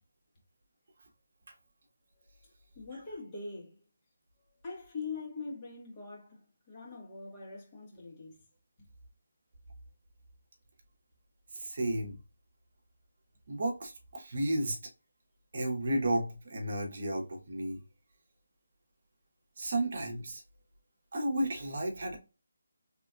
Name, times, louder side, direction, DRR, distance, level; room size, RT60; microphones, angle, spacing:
voice 1, 2.7-3.8 4.6-6.4 6.7-8.4 8.8-8.9, left 4 dB, 20° left, 1.7 m, -42 dB
voice 2, 11.6-12.2 13.5-14.8 15.5-17.8 19.6-20.4 21.1-22.2, right 1 dB, 55° right, 1.1 m, -32 dB
4.1 x 3.2 x 2.5 m
figure-of-eight pair, 160°, 0 cm